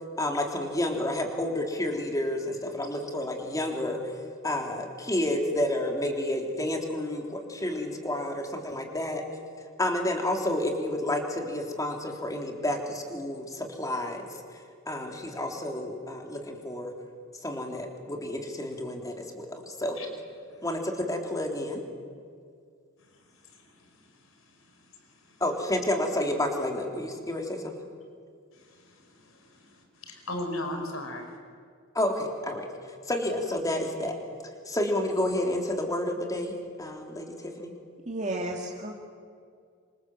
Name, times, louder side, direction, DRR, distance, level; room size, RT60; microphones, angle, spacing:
voice 1, 0.2-4.0 4.4-9.2 9.8-14.3 14.9-16.9 17.4-20.0 20.6-21.8 25.4-27.7 31.9-32.7 33.1-34.1 34.7-37.3 37.6-37.7, left 1 dB, 15° left, 2 dB, 3.5 m, -30 dB
voice 2, 29.1-29.7 30.0-31.3, left 1 dB, 75° left, 4 dB, 4.9 m, -36 dB
voice 3, 38.1-38.9, right 1 dB, 35° right, 0 dB, 2.2 m, -32 dB
27.0 x 25.5 x 8.0 m, 2.2 s
head